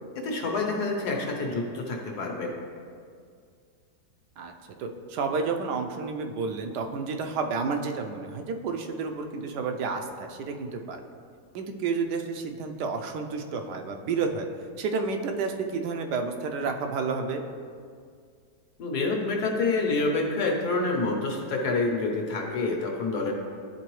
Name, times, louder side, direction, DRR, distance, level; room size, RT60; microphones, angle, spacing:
voice 1, 0.1-2.6 18.8-23.3, left 3 dB, 70° left, 0 dB, 1.4 m, -27 dB
voice 2, 4.8-11.0 11.5-14.5 14.8-17.4, right 4 dB, 85° right, 5 dB, 1.2 m, -30 dB
11.0 x 3.8 x 3.1 m, 2.1 s
omnidirectional pair, 1.8 m